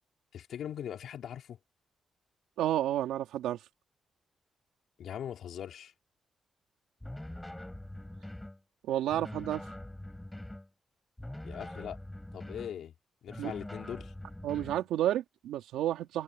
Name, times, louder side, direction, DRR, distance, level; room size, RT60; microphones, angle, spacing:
voice 1, 0.3-1.6 5.0-5.9 11.4-12.0 12.3-12.9 13.2-14.1, left 9 dB, 75° left, 4.3 m, -40 dB
voice 2, 2.6-3.6 8.8-9.7 13.4-13.5 14.4-16.2, right 12 dB, 90° right, 3.8 m, -31 dB
sound 1, 7.0-8.6 9.1-10.7 11.2-12.8 13.3-14.9, left 1 dB, 10° left, 5.6 m, -43 dB
supercardioid pair, 55°, 0 cm